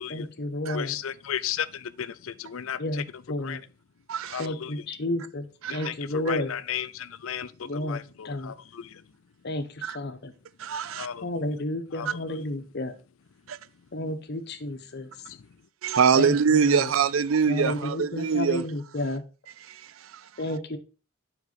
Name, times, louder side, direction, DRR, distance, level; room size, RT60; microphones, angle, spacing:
voice 1, 0.0-1.0 2.8-3.6 4.4-6.5 7.6-8.5 9.4-10.3 11.2-12.9 13.9-15.1 16.1-16.9 17.5-19.2 20.4-20.8, left 1 dB, 55° left, 1.0 m, -31 dB
voice 2, 0.7-3.0 3.4-3.6 4.3-4.8 5.7-9.0 10.9-11.3 11.9-12.4 15.3-15.5, left 9 dB, 85° left, 0.5 m, -35 dB
voice 3, 4.1-4.5 5.6-5.9 9.8-10.0 10.6-11.1 12.1-12.2 13.5-13.6 15.8-18.6 19.6-20.3, right 6 dB, 80° right, 0.4 m, -24 dB
7.9 x 5.4 x 4.0 m
head